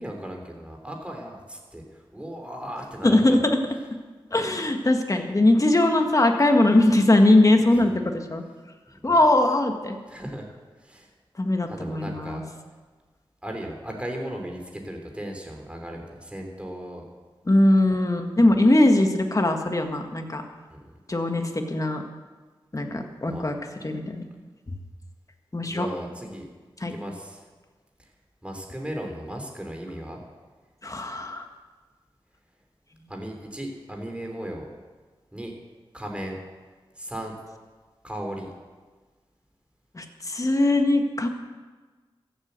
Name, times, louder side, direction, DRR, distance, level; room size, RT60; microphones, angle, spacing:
voice 1, 0.0-1.8 2.1-3.4 7.8-7.9 9.0-9.1 10.1-10.4 10.8-11.1 11.7-12.4 13.4-17.0 20.7-20.8 23.2-23.5 25.7-26.5 26.8-27.4 28.4-30.2 33.1-34.7 35.3-35.5 35.9-36.4 37.0-37.3 38.0-38.5, equal, 10° right, 2 dB, 3.4 m, -36 dB
voice 2, 3.0-3.6 4.3-8.4 9.0-10.0 11.4-12.4 17.5-20.4 21.1-22.0 22.7-23.5 23.8-24.2 25.5-25.9 26.8-26.9 30.8-31.4 39.9-41.3, left 1 dB, 35° left, 4 dB, 1.7 m, -21 dB
14.0 x 8.4 x 8.1 m, 1.4 s
wide cardioid pair, 60°, 10 cm